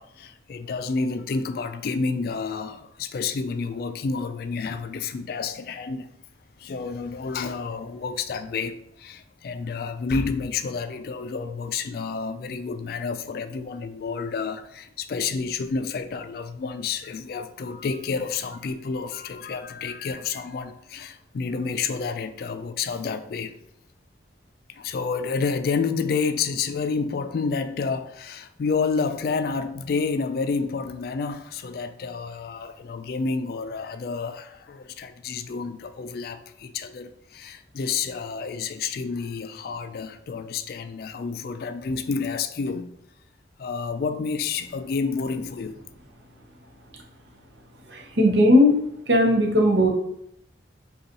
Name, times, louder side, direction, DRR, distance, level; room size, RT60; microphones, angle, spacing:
voice 1, 0.0-6.1 6.6-23.5 24.7-42.9 43.6-45.8, left 5 dB, 55° left, 0.3 m, -29 dB
voice 2, 47.9-48.8 49.1-49.9, left 1 dB, 70° right, 0.8 m, -18 dB
5.2 x 2.3 x 2.9 m
head